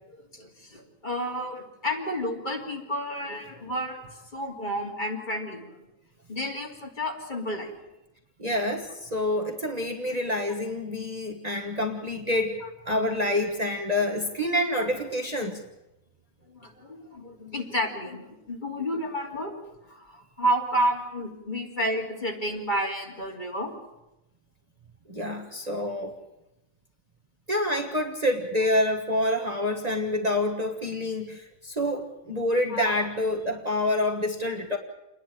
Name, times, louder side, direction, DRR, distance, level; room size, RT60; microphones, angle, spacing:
voice 1, 0.3-4.0 4.3-5.7 6.3-7.7 16.5-19.6 19.9-23.7 32.7-32.9, equal, 35° left, 0 dB, 3.1 m, -31 dB
voice 2, 8.4-15.6 25.1-26.2 27.5-34.8, left 1 dB, 30° right, 1 dB, 1.5 m, -27 dB
28.5 x 10.5 x 9.0 m, 0.93 s
omnidirectional pair, 1.4 m